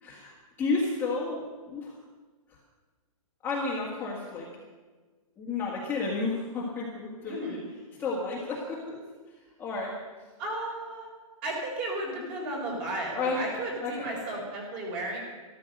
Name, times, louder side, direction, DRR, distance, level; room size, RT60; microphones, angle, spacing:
voice 1, 0.0-2.0 3.4-4.5 5.4-7.6 8.0-9.0 9.6-9.9 13.1-14.4, left 3 dB, 10° left, -5 dB, 1.8 m, -32 dB
voice 2, 7.2-7.6 10.4-11.1 11.4-15.2, right 1 dB, 25° right, 0 dB, 4.1 m, -34 dB
13.5 x 13.0 x 6.6 m, 1.3 s
hypercardioid pair, 170°, 18 cm